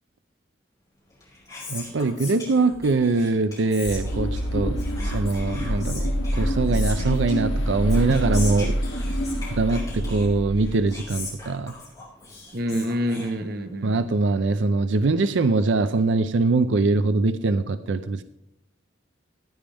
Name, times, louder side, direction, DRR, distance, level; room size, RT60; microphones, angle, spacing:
Whispering, 1.0-13.9, left 3 dB, 20° left, 5.3 m, -40 dB
voice 1, 1.7-8.7 9.6-11.7 13.8-18.2, right 3 dB, 70° right, 11 dB, 0.5 m, -23 dB
sound 1, 3.9-11.3, equal, 85° left, 1.4 m, -26 dB
voice 2, 12.5-13.9, equal, 50° right, 7 dB, 1.0 m, -27 dB
15.0 x 10.5 x 3.5 m, 0.85 s
head